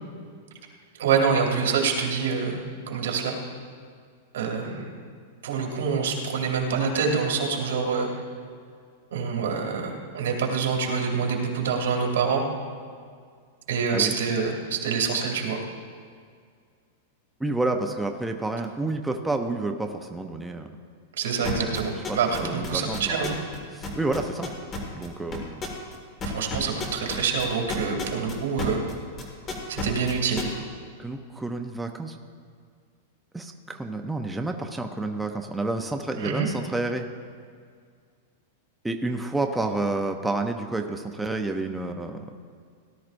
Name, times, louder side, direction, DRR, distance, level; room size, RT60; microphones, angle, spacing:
voice 1, 1.0-3.3 4.3-4.9 5.4-8.1 9.1-12.4 13.7-15.6 21.2-23.3 26.2-28.8 29.7-30.4 36.2-36.5, right 5 dB, 80° right, 0 dB, 2.6 m, -26 dB
voice 2, 17.4-20.7 21.9-23.4 23.7-24.5 24.9-25.6 31.0-32.1 33.3-37.1 38.8-42.3, right 2 dB, 5° right, 4 dB, 0.5 m, -29 dB
sound 1, 21.4-23.6 23.8-28.9 29.2-30.4, left 3 dB, 20° left, 1.8 m, -32 dB
17.5 x 12.0 x 2.6 m, 2.1 s
supercardioid pair, 160°, 0 cm